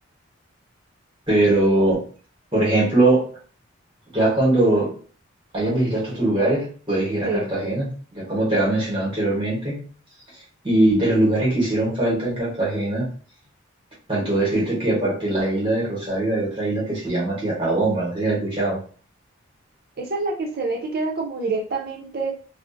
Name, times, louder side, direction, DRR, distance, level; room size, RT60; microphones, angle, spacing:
voice 1, 1.3-2.0 2.5-3.3 4.1-4.9 5.5-9.8 10.6-13.1 14.1-18.8, right 2 dB, 25° right, -5 dB, 1.0 m, -21 dB
voice 2, 20.0-22.3, right 3 dB, 50° right, 1 dB, 0.5 m, -26 dB
2.5 x 2.0 x 2.5 m, 0.41 s
head